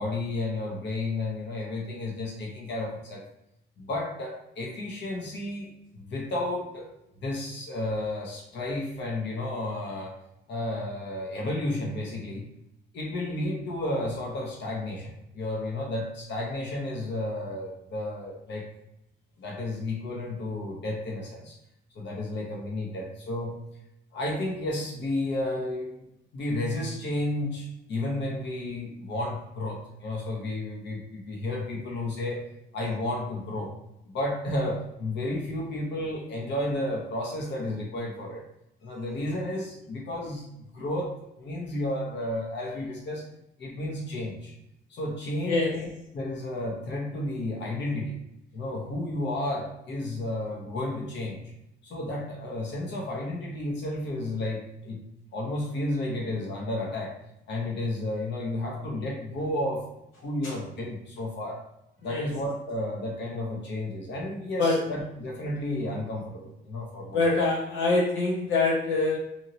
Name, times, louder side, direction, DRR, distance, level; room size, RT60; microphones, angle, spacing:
voice 1, 0.0-3.2 3.8-6.9 7.2-10.1 10.5-12.4 12.9-18.7 19.4-21.5 21.9-23.5 24.1-26.1 26.3-32.5 32.7-33.8 34.0-38.4 38.8-40.5 40.7-43.2 43.6-44.5 44.9-45.9 46.1-48.2 48.5-51.5 51.8-55.0 55.3-57.1 57.5-59.9 60.2-61.6 62.0-67.2, left 1 dB, 60° left, -1 dB, 0.9 m, -32 dB
voice 2, 67.1-69.2, left 3 dB, 90° left, -2 dB, 0.8 m, -24 dB
3.0 x 2.7 x 2.7 m, 0.83 s
cardioid pair, 90°, 20 cm